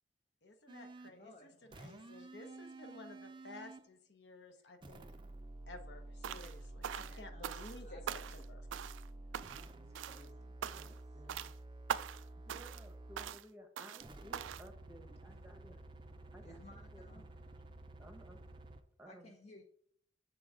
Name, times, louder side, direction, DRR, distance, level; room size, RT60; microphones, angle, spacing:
voice 1, 0.4-1.5 1.8-5.1 5.7-8.6, left 2 dB, 65° left, 7 dB, 0.8 m, -54 dB
sound 1, 0.7-1.2 1.7-3.9 4.8-13.4 14.0-18.8, right 2 dB, 25° right, 0.4 m, -51 dB
voice 2, 1.0-1.9 4.5-4.7 6.3-6.5 7.0-7.5 7.8-8.0 9.8-11.2 15.3-15.8 16.4-17.9 19.0-19.6, left 2 dB, 35° left, 2 dB, 0.6 m, -60 dB
sound 2, 6.2-6.6 6.8-7.8 8.1-8.5 8.7-9.1 9.3-9.7 10.0-10.3 10.6-11.0 11.3-11.5 11.9-12.2 12.5-12.9 13.2-13.4 13.8-14.1 14.3-14.7, right 9 dB, 85° right, 0.3 m, -42 dB
voice 3, 10.7-11.5 12.5-15.8 16.3-17.0 18.0-18.4 19.0-19.3, right 1 dB, 10° right, 5 dB, 0.8 m, -57 dB
7.1 x 3.8 x 4.9 m, 0.64 s
head